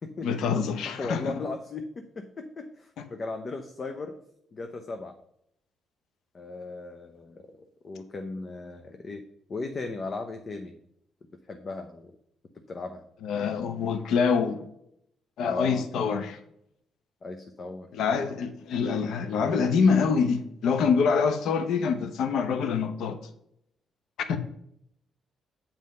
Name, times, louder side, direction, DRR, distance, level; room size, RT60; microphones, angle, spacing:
voice 1, 0.2-1.3 13.2-14.6 15.4-16.4 17.9-23.2 24.3-24.4, left 5 dB, 75° left, 0.8 m, -25 dB
voice 2, 0.9-4.2 4.5-5.2 6.3-9.2 9.5-10.8 11.5-12.2 12.7-13.0 15.4-15.8 17.2-17.9 18.1-18.3, left 3 dB, 40° left, 0.7 m, -37 dB
7.6 x 4.4 x 5.4 m
cardioid pair, 90°, 0 cm